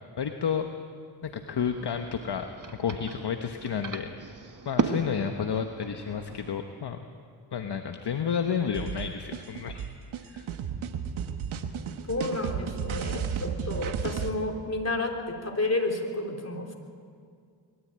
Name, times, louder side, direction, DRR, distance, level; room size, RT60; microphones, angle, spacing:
voice 1, 0.2-0.7 1.2-2.5 2.8-4.1 4.6-7.0 7.5-9.9 10.1-10.5, left 7 dB, 55° left, 6 dB, 1.2 m, -31 dB
sound 1, 1.4-6.5, right 4 dB, 40° right, 1.6 m, -36 dB
sound 2, 8.7-14.3, right 7 dB, 85° right, 1.3 m, -33 dB
voice 2, 12.0-16.7, left 2 dB, 30° left, 2 dB, 3.6 m, -31 dB
21.5 x 14.0 x 8.8 m, 2.2 s
cardioid pair, 50°, 47 cm